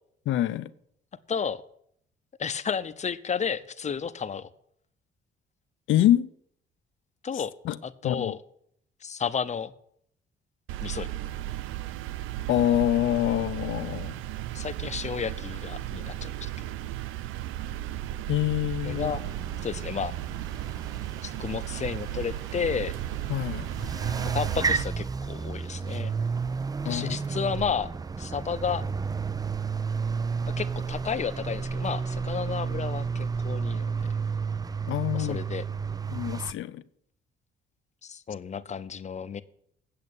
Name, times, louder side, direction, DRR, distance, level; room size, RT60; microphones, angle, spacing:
voice 1, 0.3-0.7 5.9-6.3 7.6-7.8 8.0-8.3 12.5-14.2 18.3-19.1 23.3-23.7 26.8-27.2 34.9-35.4 36.1-36.8, left 12 dB, 75° left, 0.6 m, -25 dB
voice 2, 1.3-1.6 2.4-4.5 7.2-7.5 7.8-8.4 9.0-9.7 10.8-11.1 14.5-16.8 18.8-19.2 19.6-20.2 21.2-22.9 24.2-26.1 26.8-27.9 28.2-28.8 30.4-34.1 35.1-35.6 38.0-39.4, left 6 dB, 35° left, 0.7 m, -32 dB
sound 1, 10.7-24.8, right 13 dB, 90° right, 0.4 m, -35 dB
sound 2, 18.9-36.5, right 5 dB, 20° right, 0.4 m, -32 dB
8.5 x 7.8 x 8.8 m
cardioid pair, 90°, 20 cm